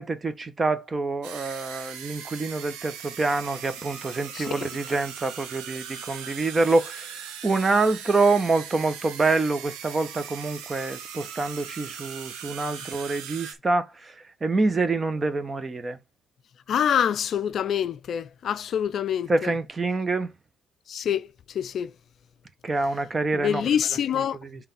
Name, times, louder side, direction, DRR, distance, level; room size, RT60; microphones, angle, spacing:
voice 1, 0.0-14.1 14.4-16.0 19.3-20.3 22.6-23.7 24.1-24.7, right 3 dB, 30° right, 1.2 m, -26 dB
sound 1, 1.2-13.5, right 8 dB, 75° right, 1.1 m, -39 dB
voice 2, 4.3-4.7 16.7-19.5 20.9-21.9 23.3-24.4, left 9 dB, 55° left, 0.4 m, -26 dB
5.6 x 3.3 x 5.4 m
hypercardioid pair, 60°, 0 cm